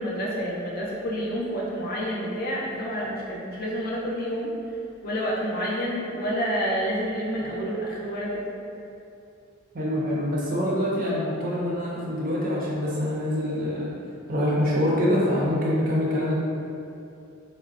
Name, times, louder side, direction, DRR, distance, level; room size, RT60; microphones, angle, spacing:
voice 1, 0.0-4.5 5.0-8.5, equal, 50° left, -4 dB, 0.5 m, -29 dB
voice 2, 9.7-13.9 14.3-16.3, left 1 dB, 45° right, -5 dB, 0.5 m, -25 dB
3.7 x 2.1 x 2.4 m, 2.6 s
head